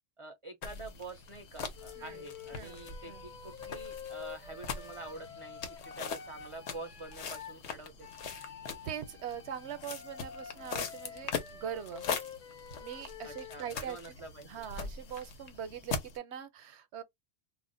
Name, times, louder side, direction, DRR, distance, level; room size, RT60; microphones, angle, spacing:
voice 1, 0.2-5.6 6.0-8.1 13.2-14.6, right 2 dB, 45° right, 0.4 m, -47 dB
sound 1, 0.6-16.2, left 5 dB, 80° left, 1.0 m, -42 dB
Wind instrument woodwind instrument, 1.8-7.6 8.0-13.6, left 7 dB, 50° left, 0.8 m, -48 dB
voice 2, 8.8-12.1 12.8-14.2 14.4-17.0, right 9 dB, 80° right, 0.9 m, -42 dB
2.4 x 2.1 x 3.7 m
omnidirectional pair, 1.2 m